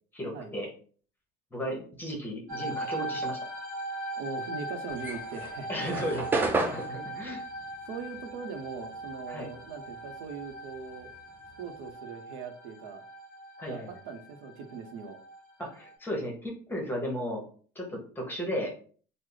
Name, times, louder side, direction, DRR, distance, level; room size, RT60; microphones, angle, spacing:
voice 1, 0.1-0.7 1.5-3.4 5.7-6.3 6.5-7.4 9.3-9.5 13.6-13.9 15.6-17.4 17.7-18.7, equal, 10° left, 0 dB, 0.8 m, -34 dB
sound 1, 2.5-15.9, right 1 dB, 45° right, 1.1 m, -40 dB
voice 2, 4.1-5.7 7.9-11.1 11.6-13.0 13.7-15.2, right 5 dB, 85° right, 6 dB, 0.7 m, -40 dB
sound 2, 4.9-9.6 9.9-11.9, right 3 dB, 10° right, 0.4 m, -33 dB
3.2 x 2.0 x 3.8 m, 0.43 s
cardioid pair, 165°, 18 cm